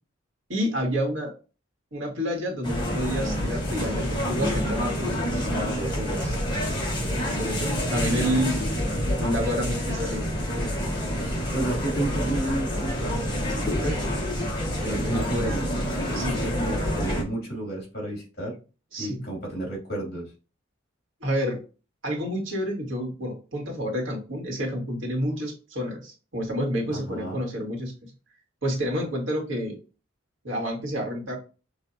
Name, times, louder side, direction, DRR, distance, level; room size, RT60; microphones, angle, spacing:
voice 1, 0.5-1.3 1.9-6.4 7.2-8.6 9.2-10.3 13.8-14.0 15.2-15.3 16.1-16.4 18.9-19.2 21.2-21.6 22.0-28.1 28.6-29.8 30.4-31.4, equal, 75° right, 0 dB, 1.8 m, -29 dB
sound 1, 2.6-17.2, equal, 25° left, 1.3 m, -27 dB
voice 2, 7.8-8.5 11.2-13.2 13.5-14.0 14.8-18.6 19.0-20.3 26.9-27.4, right 1 dB, 50° left, -2 dB, 2.5 m, -32 dB
6.3 x 2.6 x 2.7 m, 0.33 s
head